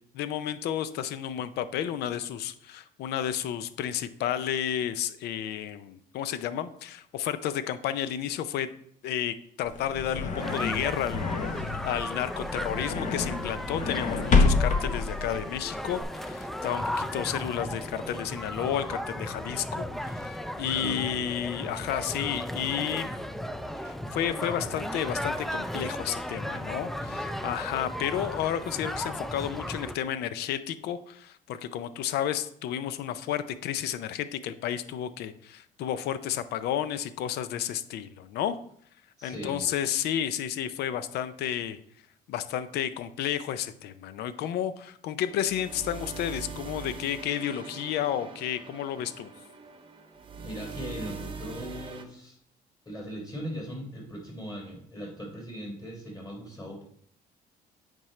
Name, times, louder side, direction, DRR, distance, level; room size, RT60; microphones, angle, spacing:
voice 1, 0.1-8.7 9.0-23.1 23.8-38.6 39.2-41.8 42.3-49.3, left 10 dB, 75° left, 13 dB, 0.5 m, -32 dB
sound 1, 9.6-16.0, left 4 dB, 45° left, 0.9 m, -28 dB
sound 2, 10.4-29.9, equal, ahead, 0.3 m, -35 dB
voice 2, 20.7-21.1 39.2-39.7 50.4-52.4 52.8-56.8, equal, 25° left, -1 dB, 3.2 m, -39 dB
sound 3, 45.2-52.0, right 4 dB, 30° right, 0.9 m, -42 dB
8.6 x 5.2 x 3.2 m, 0.66 s
cardioid pair, 110°, 17 cm